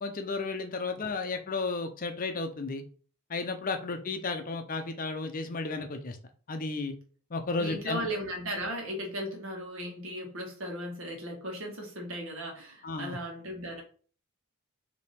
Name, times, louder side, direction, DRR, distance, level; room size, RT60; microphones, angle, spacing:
voice 1, 0.0-2.8 3.3-6.2 6.5-6.9 7.3-8.1 12.8-13.2, left 3 dB, 40° left, 7 dB, 0.5 m, -33 dB
voice 2, 7.6-13.8, equal, 65° right, 1 dB, 1.5 m, -37 dB
3.4 x 2.9 x 4.2 m, 0.41 s
head